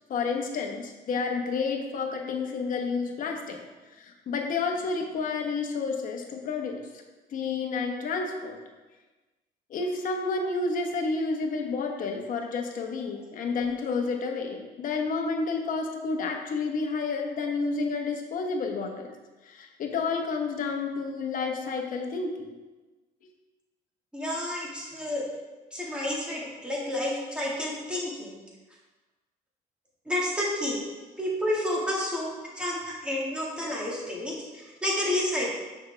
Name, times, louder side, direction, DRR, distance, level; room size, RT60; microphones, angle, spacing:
voice 1, 0.1-3.6 4.0-6.8 7.3-8.6 9.7-19.1 19.4-22.3, left 4 dB, 55° left, 2 dB, 1.1 m, -30 dB
voice 2, 24.1-25.3 25.7-28.4 30.1-30.8 31.2-35.6, left 1 dB, 5° right, -5 dB, 2.0 m, -30 dB
6.4 x 5.8 x 3.4 m, 1.2 s
cardioid pair, 110°, 17 cm